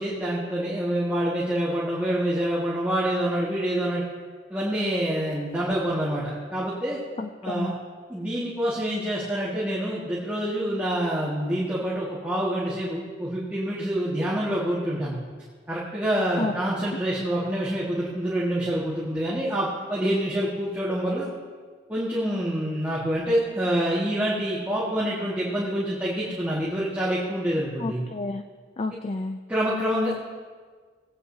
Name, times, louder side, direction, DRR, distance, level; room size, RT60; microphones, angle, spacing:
voice 1, 0.0-4.0 4.5-7.0 7.4-7.7 8.1-15.2 15.7-21.3 21.9-28.0 29.5-30.1, right 1 dB, 10° right, -8 dB, 1.7 m, -26 dB
voice 2, 7.2-7.7 16.4-16.5 16.9-17.0 27.8-28.4 28.8-29.4, left 2 dB, 35° left, 7 dB, 0.4 m, -30 dB
19.0 x 8.7 x 2.7 m, 1.5 s
head